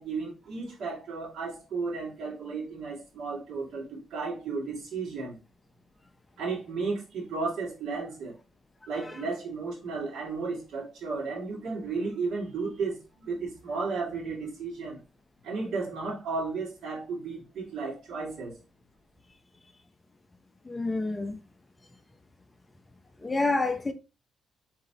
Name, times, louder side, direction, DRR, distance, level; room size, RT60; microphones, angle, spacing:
voice 1, 0.0-5.4 6.4-8.4 8.9-15.0 15.4-18.6, right 4 dB, 70° right, 2.1 m, -34 dB
voice 2, 20.7-21.4 23.2-23.9, left 2 dB, 20° left, 0.6 m, -28 dB
4.8 x 3.8 x 2.8 m
cardioid pair, 100°, 0 cm